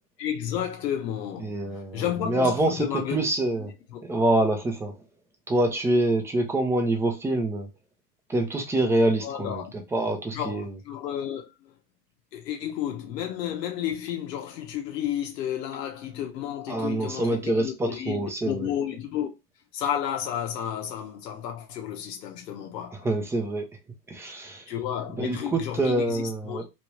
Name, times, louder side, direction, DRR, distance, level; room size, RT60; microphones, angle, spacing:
voice 1, 0.2-3.3 3.5-4.0 9.2-9.7 10.3-11.8 12.3-19.3 19.7-22.9 24.7-26.6, left 10 dB, 80° left, 1.0 m, -32 dB
voice 2, 1.4-2.9 3.1-3.7 4.1-4.9 5.5-7.7 8.3-9.6 9.9-10.7 16.7-18.7 23.0-23.6 24.1-24.6 25.2-26.6, right 1 dB, 5° right, 0.4 m, -25 dB
3.1 x 2.5 x 3.0 m
hypercardioid pair, 110°, 48 cm